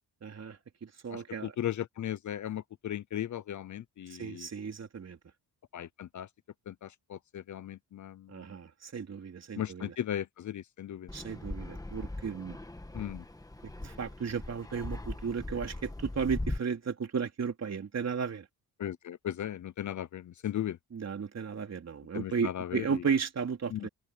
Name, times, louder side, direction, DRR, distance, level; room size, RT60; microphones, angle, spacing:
voice 1, 0.2-0.6 0.8-1.5 4.2-5.2 8.3-9.9 11.1-12.6 13.8-18.4 20.9-23.9, right 6 dB, 40° right, 3.6 m, -34 dB
voice 2, 1.1-4.5 5.7-6.3 6.7-8.3 9.6-11.1 12.9-13.2 18.8-20.8 22.1-22.9 23.7-23.9, left 11 dB, 50° left, 0.7 m, -37 dB
Fixed-wing aircraft airplane, 11.1-16.6, left 2 dB, 10° left, 1.6 m, -40 dB
open air
cardioid pair, 120°, 38 cm